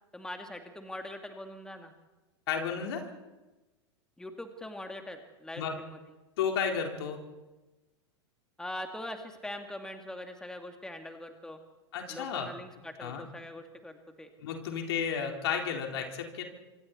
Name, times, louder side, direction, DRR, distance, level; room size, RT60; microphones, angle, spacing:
voice 1, 0.1-1.9 4.2-6.0 8.6-11.6 12.1-14.3, left 1 dB, 5° left, 5 dB, 2.1 m, -42 dB
voice 2, 2.5-3.1 5.6-5.7 6.4-7.2 11.9-12.5 13.0-13.3 14.4-16.4, left 7 dB, 65° left, 2 dB, 4.0 m, -32 dB
26.5 x 24.5 x 4.3 m, 1.1 s
figure-of-eight pair, 95°, 15 cm